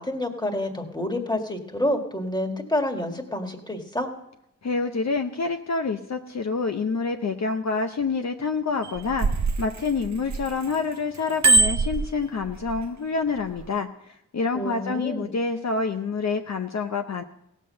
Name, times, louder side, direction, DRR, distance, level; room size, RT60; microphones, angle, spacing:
voice 1, 0.0-4.1 14.5-15.3, left 1 dB, 15° left, 4 dB, 1.9 m, -28 dB
voice 2, 4.6-9.3 9.6-17.2, left 4 dB, 60° left, 6 dB, 0.7 m, -27 dB
Bicycle bell, 8.8-10.7 11.1-12.8 13.4-13.6, right 3 dB, 60° right, 0.6 m, -23 dB
16.5 x 7.4 x 6.5 m, 0.80 s
wide cardioid pair, 65°, 31 cm